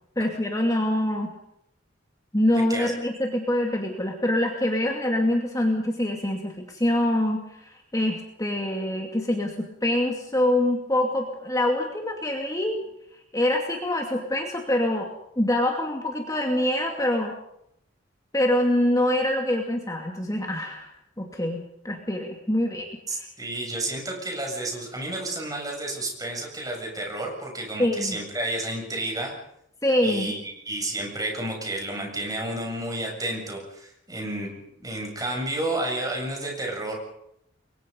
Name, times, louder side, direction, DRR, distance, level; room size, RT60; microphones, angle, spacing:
voice 1, 0.2-1.4 2.3-12.9 13.3-15.1 15.4-17.3 18.3-20.9 21.2-23.3 27.8-28.2 29.8-30.3, left 1 dB, 20° left, 1 dB, 2.6 m, -25 dB
voice 2, 23.1-29.4 30.0-34.5 34.8-36.9, right 1 dB, 20° right, 1 dB, 7.5 m, -31 dB
30.0 x 23.5 x 5.4 m, 0.76 s
head